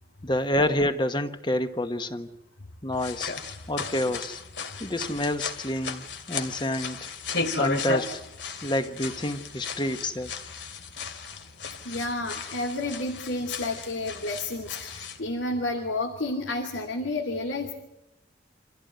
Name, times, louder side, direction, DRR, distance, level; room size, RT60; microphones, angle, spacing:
voice 1, 0.2-2.4 2.8-3.3 3.7-4.4 4.8-7.1 7.6-8.2 8.6-10.4, left 1 dB, 25° left, 9 dB, 1.2 m, -28 dB
sound 1, 2.9-15.2, left 4 dB, 70° left, 2.5 m, -35 dB
voice 2, 11.8-17.7, left 2 dB, 90° left, 1 dB, 2.6 m, -31 dB
26.5 x 15.5 x 9.3 m, 0.90 s
head